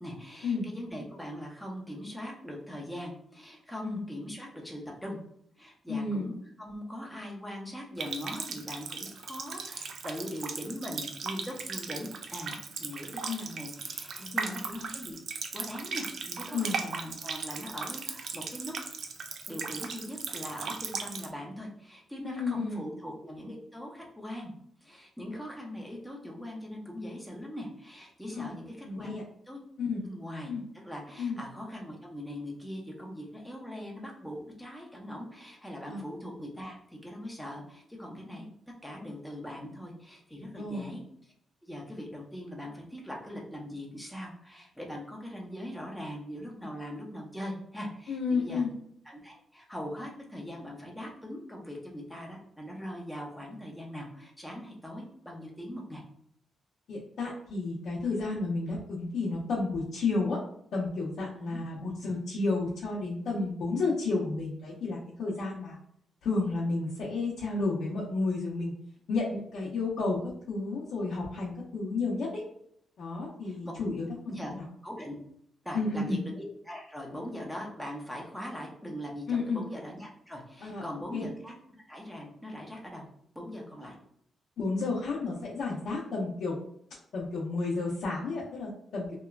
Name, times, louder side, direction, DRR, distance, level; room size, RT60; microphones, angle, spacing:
voice 1, 0.0-5.2 5.6-15.2 15.5-18.7 19.5-24.5 24.8-29.1 29.5-29.6 30.0-38.5 38.8-41.3 41.6-48.6 49.1-56.0 61.3-61.6 73.4-73.6 74.3-74.5 74.8-75.2 75.6-81.5 81.9-83.0 83.3-83.9, equal, ahead, -2 dB, 0.6 m, -41 dB
voice 2, 5.9-6.3 13.3-13.4 14.2-14.6 16.5-16.8 22.2-22.8 28.3-28.5 28.8-29.2 29.8-30.0 30.5-30.6 31.2-31.4 35.9-36.0 40.5-40.9 48.1-48.7 56.9-60.4 60.7-65.8 66.2-68.7 69.1-70.2 70.5-72.4 73.0-74.6 75.7-76.2 79.3-79.6 80.6-80.8 81.1-81.2 84.6-86.6 87.1-89.1, left 3 dB, 70° left, -7 dB, 0.6 m, -31 dB
Water tap faucet, 8.0-21.3, right 5 dB, 60° right, 0.3 m, -37 dB
2.9 x 2.2 x 2.3 m, 0.70 s
cardioid pair, 125°, 0 cm